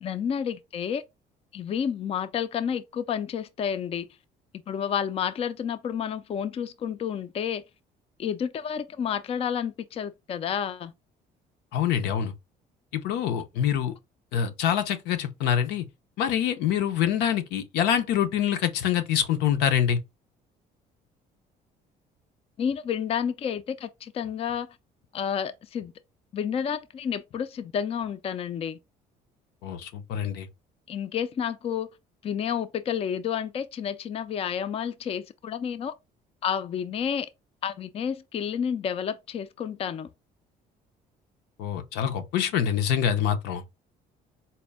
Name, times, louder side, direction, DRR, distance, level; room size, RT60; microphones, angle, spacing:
voice 1, 0.0-1.0 1.5-4.1 4.7-7.6 8.2-10.9 22.6-24.8 25.1-25.9 26.3-28.8 30.9-31.9 32.2-35.9 36.4-37.3 37.6-40.1, left 8 dB, 35° left, 0.4 m, -30 dB
voice 2, 11.7-12.3 12.9-13.9 14.3-15.9 16.2-20.0 29.6-30.5 41.6-43.6, left 9 dB, 85° left, 0.6 m, -25 dB
4.2 x 2.1 x 3.4 m
cardioid pair, 110°, 17 cm